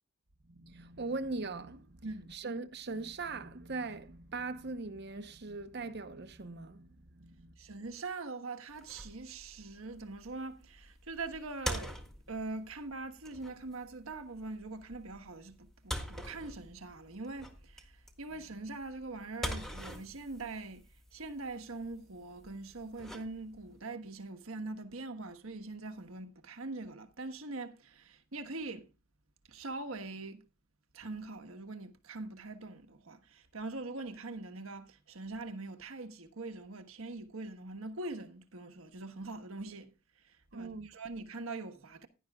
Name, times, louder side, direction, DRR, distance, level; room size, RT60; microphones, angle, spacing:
voice 1, 0.5-6.9 7.2-7.5 18.3-18.4 40.5-40.9, right 3 dB, 50° right, 0.9 m, -40 dB
voice 2, 2.0-2.3 7.6-12.0 12.3-20.8 21.1-28.9 29.5-30.4 30.9-39.9 40.2-42.1, right 3 dB, 80° right, 1.4 m, -43 dB
sound 1, 8.7-23.8, equal, ahead, 1.6 m, -45 dB
16.0 x 11.0 x 2.3 m
head